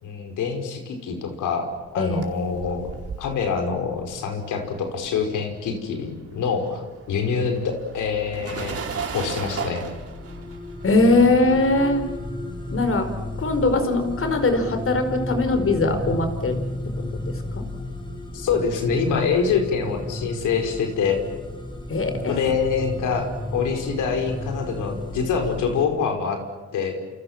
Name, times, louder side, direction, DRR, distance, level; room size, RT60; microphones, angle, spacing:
voice 1, 0.0-2.9 3.2-8.8 9.1-9.8 18.3-21.2 22.3-26.4 26.7-26.9, left 6 dB, 80° left, 5 dB, 5.3 m, -25 dB
sound 1, 1.9-5.5 5.8-16.5, right 5 dB, 50° right, 4.5 m, -38 dB
sound 2, 9.6-25.8, left 1 dB, 15° left, 5.5 m, -33 dB
voice 2, 10.8-12.0 12.7-13.1 13.4-16.6 16.9-17.6 19.1-19.2 21.9-22.3 23.6-23.8, left 2 dB, 45° left, 8 dB, 5.0 m, -21 dB
28.5 x 27.5 x 7.5 m, 1.2 s
cardioid pair, 90°, 30 cm